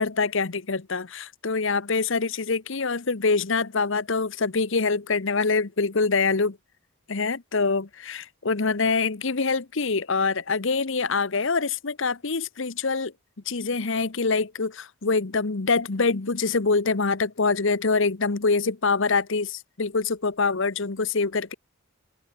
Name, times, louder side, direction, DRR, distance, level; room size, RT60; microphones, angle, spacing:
voice 1, 0.0-6.6 7.1-13.1 13.5-21.5, left 4 dB, 60° left, 0.9 m, -25 dB
open air
head